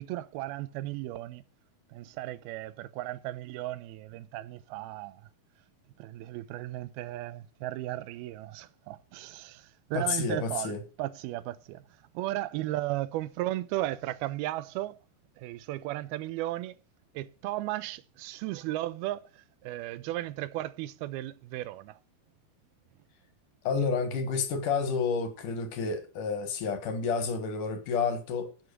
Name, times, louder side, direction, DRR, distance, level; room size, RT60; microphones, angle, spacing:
voice 1, 0.0-1.4 1.9-5.2 6.0-11.8 12.1-15.0 15.4-16.8 17.1-22.0, right 16 dB, 80° right, 2.5 m, -35 dB
voice 2, 9.9-10.8 23.6-28.5, left 5 dB, 65° left, 2.9 m, -30 dB
11.0 x 8.1 x 6.5 m
omnidirectional pair, 4.4 m